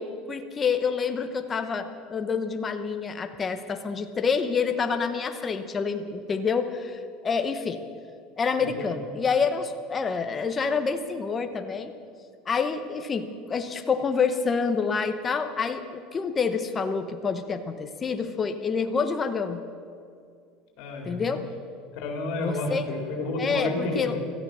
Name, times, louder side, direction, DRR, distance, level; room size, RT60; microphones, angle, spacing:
voice 1, 0.0-7.8 8.4-11.9 12.5-19.6 21.0-21.4 22.4-22.8 23.4-24.1, left 5 dB, 20° left, 7 dB, 0.9 m, -27 dB
voice 2, 8.6-8.9 20.8-21.4 21.9-24.2, left 2 dB, 60° left, 0 dB, 4.1 m, -31 dB
16.5 x 14.0 x 6.1 m, 2.3 s
cardioid pair, 150°, 0 cm